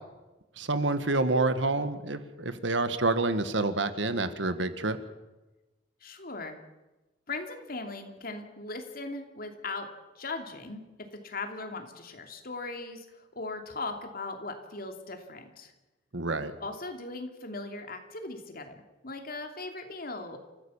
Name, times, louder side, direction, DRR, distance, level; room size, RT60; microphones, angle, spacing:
voice 1, 0.6-5.0 16.1-16.5, right 2 dB, 85° right, 11 dB, 1.7 m, -28 dB
voice 2, 6.0-6.6 7.3-9.9 10.1-10.8 11.1-15.7 16.6-20.4, left 3 dB, 50° left, 5 dB, 2.9 m, -39 dB
28.5 x 15.0 x 7.3 m, 1.1 s
head